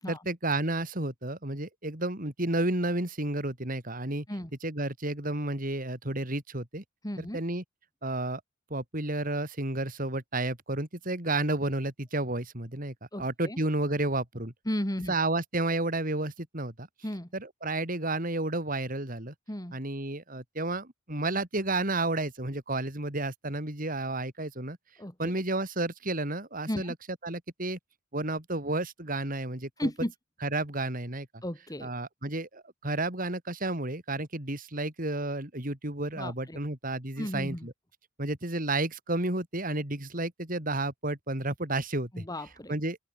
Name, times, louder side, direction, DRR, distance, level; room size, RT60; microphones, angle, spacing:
voice 1, 0.1-4.3 4.6-6.8 7.2-7.6 8.0-8.4 8.7-14.5 15.1-16.9 17.3-19.3 19.7-24.8 25.2-26.9 27.2-27.8 28.1-29.9 30.4-31.4 31.8-37.7 38.2-42.2 42.7-43.0, right 2 dB, 45° right, 4.1 m, -31 dB
voice 2, 7.0-7.4 13.1-13.6 14.7-15.2 17.0-17.3 19.5-19.8 25.0-25.3 26.7-26.9 29.8-30.1 31.4-31.9 36.1-36.6 37.2-37.7 42.1-42.8, equal, 20° left, 3.6 m, -34 dB
open air
head